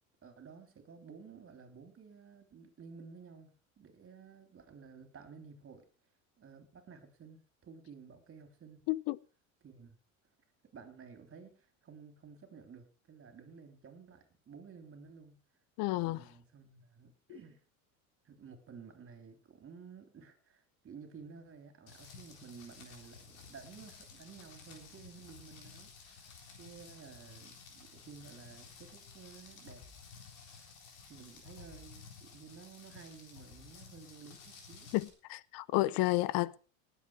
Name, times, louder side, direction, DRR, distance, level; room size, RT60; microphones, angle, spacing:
voice 1, 0.2-5.8 6.4-8.8 9.6-10.0 10.7-15.4 16.0-17.6 18.2-29.8 30.4-34.9, right 5 dB, 35° right, 3.7 m, -53 dB
voice 2, 15.8-16.2 34.9-36.6, left 19 dB, 60° left, 0.7 m, -31 dB
Rain, 21.9-35.1, left 5 dB, 85° left, 3.9 m, -54 dB
19.5 x 8.2 x 4.8 m
hypercardioid pair, 90°, 41 cm